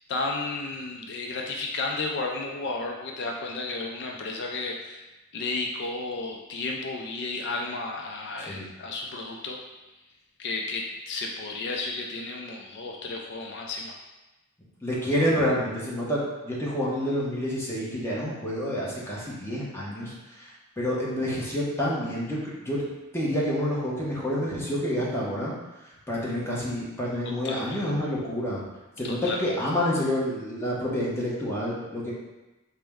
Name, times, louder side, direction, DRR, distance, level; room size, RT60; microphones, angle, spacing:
voice 1, 0.1-9.6 10.4-13.9 27.4-27.9 29.0-29.5, left 3 dB, 50° left, 0 dB, 0.4 m, -33 dB
voice 2, 14.8-20.5 20.8-22.8 23.1-25.5 26.1-28.6 29.0-32.1, equal, 10° left, -6 dB, 0.8 m, -28 dB
4.3 x 2.0 x 3.5 m, 1.1 s
head